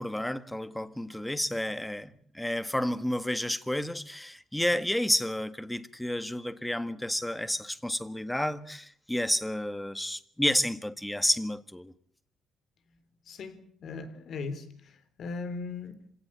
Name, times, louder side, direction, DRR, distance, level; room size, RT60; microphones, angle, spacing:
voice 1, 0.0-11.9, left 1 dB, 5° left, 1.6 m, -30 dB
voice 2, 13.3-16.0, left 4 dB, 65° left, 3.8 m, -39 dB
27.0 x 17.5 x 8.8 m
cardioid pair, 90°, 0 cm